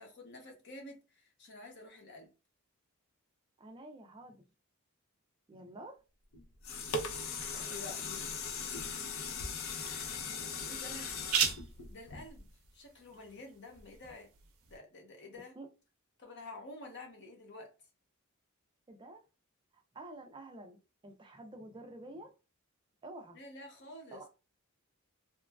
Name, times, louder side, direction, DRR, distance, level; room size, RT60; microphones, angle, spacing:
voice 1, 0.0-2.3 7.7-8.5 9.6-11.3 11.9-12.5 12.7-14.3 14.7-15.5 16.2-17.7 23.3-24.2, left 2 dB, 55° left, 0.9 m, -50 dB
voice 2, 3.6-4.4 5.5-6.0 7.5-7.8 15.6-15.7 18.9-19.2 19.9-22.3 23.0-23.4 24.1-24.3, right 2 dB, 20° right, 0.4 m, -49 dB
sound 1, 6.3-12.7 13.2-13.3, left 4 dB, 70° left, 0.5 m, -39 dB
sound 2, 7.3-14.8, right 7 dB, 75° right, 0.5 m, -41 dB
3.0 x 2.3 x 2.2 m
head